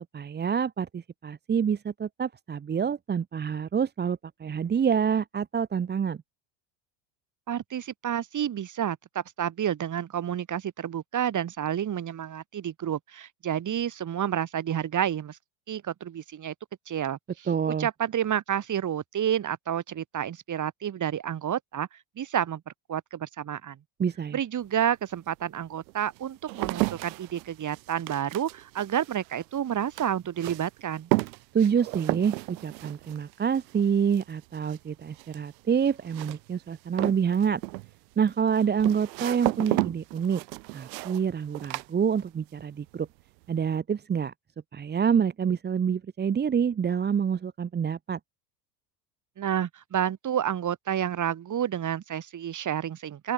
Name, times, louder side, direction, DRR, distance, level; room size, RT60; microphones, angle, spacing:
voice 1, 0.1-6.2 17.5-17.9 24.0-24.4 31.5-37.6 38.2-40.4 40.7-43.1 43.5-44.3 44.7-48.2, right 7 dB, 20° right, 0.9 m, -27 dB
voice 2, 7.5-15.4 15.7-16.5 16.9-17.2 17.8-21.9 22.2-22.6 22.9-23.8 24.3-31.1 49.4-53.3, right 9 dB, 35° right, 4.1 m, -30 dB
sound 1, 24.6-24.7 25.4-42.6 42.9-43.5, right 26 dB, 75° right, 5.4 m, -34 dB
open air
supercardioid pair, 100°, 50 cm